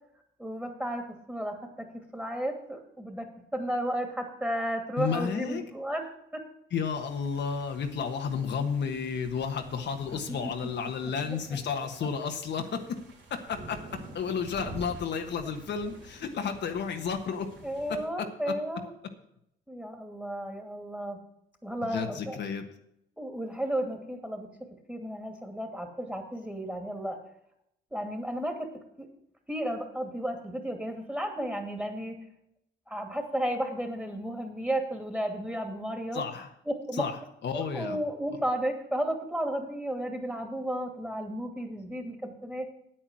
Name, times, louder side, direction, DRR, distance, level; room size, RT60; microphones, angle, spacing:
voice 1, 0.4-1.9 2.1-3.3 3.5-6.1 6.3-6.4 10.1-10.2 11.3-11.6 17.6-18.9 19.7-21.2 21.6-22.4 23.2-24.5 24.9-27.2 27.9-28.7 29.0-29.1 29.5-32.2 32.9-36.2 36.7-37.1 37.5-42.7, right 1 dB, 5° right, 4 dB, 2.6 m, -33 dB
voice 2, 5.0-5.6 6.7-13.0 13.3-13.8 14.1-17.5 18.5-18.6 21.9-22.6 36.1-36.5 36.9-38.0, left 6 dB, 60° left, 5 dB, 1.3 m, -32 dB
sound 1, 6.8-18.1, right 2 dB, 70° right, 3.4 m, -49 dB
9.0 x 8.8 x 6.3 m, 0.75 s
cardioid pair, 90°, 20 cm